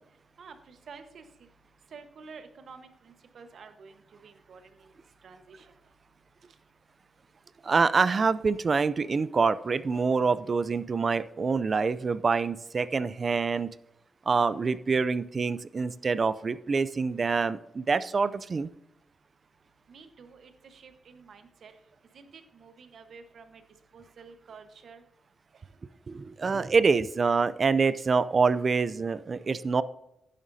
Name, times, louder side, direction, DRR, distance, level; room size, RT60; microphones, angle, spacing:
voice 1, 0.4-1.5 1.9-4.9 5.2-5.7 19.9-21.8 22.1-23.6 23.9-25.0 25.5-25.7, right 5 dB, 65° right, 7 dB, 1.2 m, -50 dB
voice 2, 7.6-13.7 14.3-18.7 26.1-29.8, right 4 dB, 40° right, 16 dB, 0.4 m, -26 dB
11.5 x 10.0 x 2.7 m, 0.87 s
cardioid pair, 110°, 0 cm